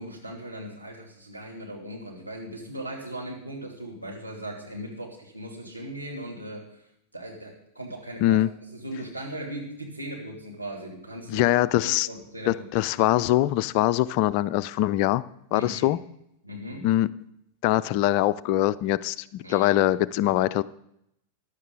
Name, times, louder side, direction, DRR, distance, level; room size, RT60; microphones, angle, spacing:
voice 1, 0.0-6.8 7.1-8.4 8.7-11.4 11.8-12.7 15.5-16.0 16.4-16.9 19.4-19.9, right 1 dB, 90° right, -2 dB, 2.7 m, -38 dB
voice 2, 11.3-12.1 12.5-15.2 15.5-16.0 16.8-17.1 17.6-20.6, left 14 dB, 45° left, 18 dB, 0.4 m, -23 dB
15.0 x 11.0 x 3.9 m, 0.78 s
figure-of-eight pair, 90°, 0 cm